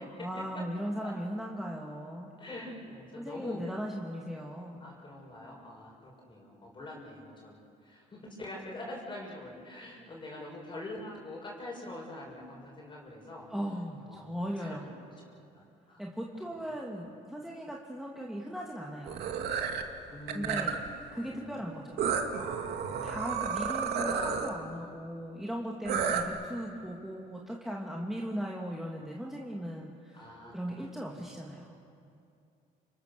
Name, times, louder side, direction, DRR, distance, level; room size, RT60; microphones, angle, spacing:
voice 1, 0.2-2.3 3.2-4.9 13.5-14.8 16.0-19.2 20.3-20.8 21.1-22.0 23.0-31.8, equal, ahead, -2 dB, 2.5 m, -38 dB
voice 2, 2.4-3.6 4.8-7.6 7.8-13.5 14.1-14.9 15.5-16.0 16.5-16.7 20.1-20.8 21.3-21.7 22.8-23.3 24.0-24.9 30.1-30.9 31.2-31.3, left 1 dB, 30° left, -2 dB, 6.5 m, -44 dB
sound 1, 19.1-19.8 20.3-20.9 22.0-24.5 25.9-26.2, right 7 dB, 75° right, 2.5 m, -31 dB
29.5 x 27.5 x 6.9 m, 2.5 s
cardioid pair, 110°, 17 cm